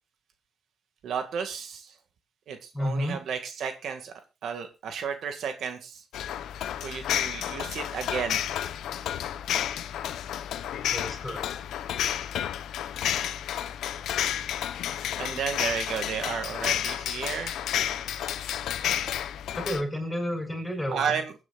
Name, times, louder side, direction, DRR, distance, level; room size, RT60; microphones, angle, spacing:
voice 1, 1.0-2.0 2.5-4.1 4.4-6.0 6.8-8.4 15.2-17.5 20.9-21.3, right 6 dB, 70° right, 6 dB, 2.1 m, -32 dB
voice 2, 2.7-3.2 10.9-11.4 19.6-21.1, equal, 10° left, 4 dB, 6.6 m, -31 dB
sound 1, 6.1-19.8, left 10 dB, 85° left, 1.0 m, -31 dB
23.5 x 9.6 x 2.5 m, 0.28 s
cardioid pair, 125°, 0 cm